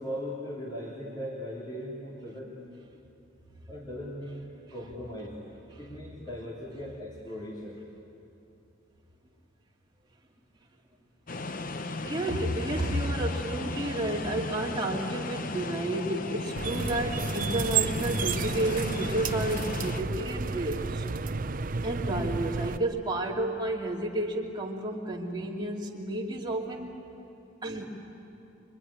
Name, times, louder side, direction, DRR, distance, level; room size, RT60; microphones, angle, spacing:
voice 1, 0.0-2.7 3.7-5.4 5.8-7.8, equal, 20° left, -5 dB, 3.3 m, -39 dB
sound 1, 11.3-20.0, left 3 dB, 45° left, 0.8 m, -36 dB
voice 2, 12.0-21.1 21.8-27.0 27.6-27.8, right 1 dB, 25° right, -1 dB, 2.6 m, -31 dB
sound 2, 16.6-22.8, right 5 dB, 45° right, 0.6 m, -31 dB
25.0 x 24.0 x 9.8 m, 2.8 s
head